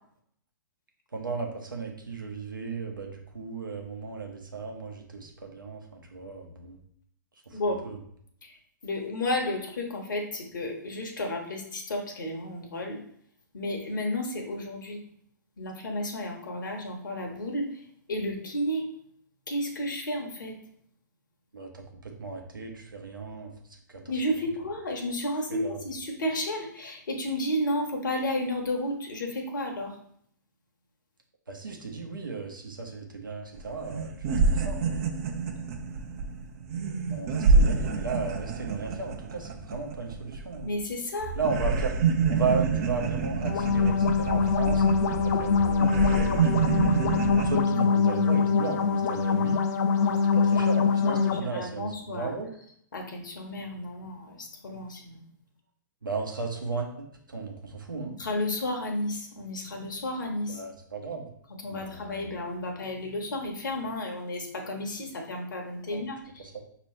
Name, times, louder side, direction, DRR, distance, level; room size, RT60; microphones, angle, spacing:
voice 1, 1.1-6.8 7.5-8.0 21.5-23.5 23.9-24.0 25.5-25.8 31.5-34.9 37.1-40.7 41.3-41.9 42.3-46.6 47.4-49.6 50.3-52.5 56.0-58.2 60.5-61.3 61.7-62.3 65.9-66.0 66.5-66.6, right 4 dB, 85° right, 2 dB, 0.9 m, -35 dB
voice 2, 8.8-13.0 13.5-15.0 15.6-17.8 18.1-18.8 19.5-20.5 24.1-30.0 40.6-41.3 50.0-50.2 51.0-52.3 52.9-55.2 58.2-60.6 61.6-66.4, left 1 dB, 70° left, 2 dB, 0.9 m, -32 dB
sound 1, 33.5-33.6 33.9-40.9 41.2-47.6, right 4 dB, 45° right, 0.6 m, -27 dB
sound 2, 43.4-51.4, left 5 dB, 50° left, 0.4 m, -24 dB
5.6 x 3.0 x 3.1 m, 0.66 s
figure-of-eight pair, 115°, 11 cm